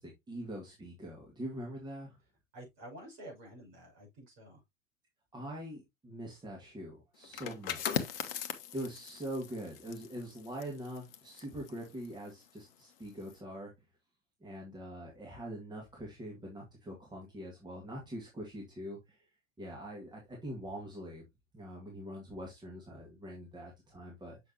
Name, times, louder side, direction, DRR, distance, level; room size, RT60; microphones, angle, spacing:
voice 1, 0.0-2.2 5.3-8.1 8.7-13.7 14.4-19.3 19.6-21.2 21.5-24.4, equal, 10° right, 2.0 m, -43 dB
voice 2, 2.5-4.6, right 1 dB, 45° right, 5.7 m, -50 dB
sound 1, 7.2-12.7 13.1-13.4, left 9 dB, 45° left, 1.0 m, -40 dB
7.2 x 6.2 x 2.9 m
figure-of-eight pair, 95°, 39 cm